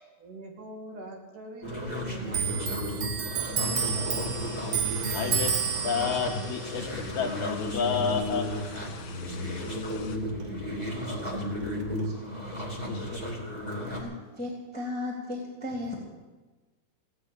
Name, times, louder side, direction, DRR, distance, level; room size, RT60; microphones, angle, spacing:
voice 1, 0.2-3.0, right 1 dB, 55° right, 2 dB, 3.5 m, -43 dB
sound 1, 1.6-14.0, left 1 dB, 15° right, 1.5 m, -34 dB
Clock, 2.3-9.3 9.6-10.9 11.2-12.0, right 7 dB, 75° right, 1.5 m, -32 dB
sound 2, 3.6-10.2, left 6 dB, 55° left, 2.5 m, -47 dB
voice 2, 5.1-5.6 5.8-6.9 7.1-8.5 9.9-10.0 12.9-13.2, left 6 dB, 75° left, 0 dB, 1.7 m, -30 dB
voice 3, 13.9-15.9, left 2 dB, 5° left, -2 dB, 2.3 m, -35 dB
17.0 x 8.3 x 9.9 m, 1.2 s
omnidirectional pair, 4.8 m